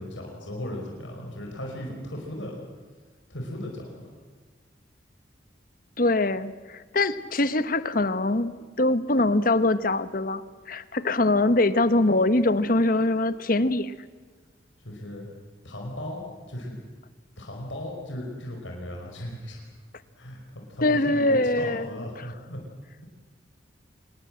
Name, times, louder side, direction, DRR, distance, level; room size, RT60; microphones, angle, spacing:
voice 1, 0.0-2.6 3.3-4.1 14.8-15.3 15.6-16.2 16.5-16.7 17.4-19.6 20.2-22.6, left 1 dB, 85° left, 0 dB, 5.2 m, -37 dB
voice 2, 6.0-10.4 10.7-13.9 20.8-21.9, left 2 dB, 50° left, 12 dB, 1.2 m, -23 dB
27.0 x 21.0 x 7.8 m, 1.4 s
head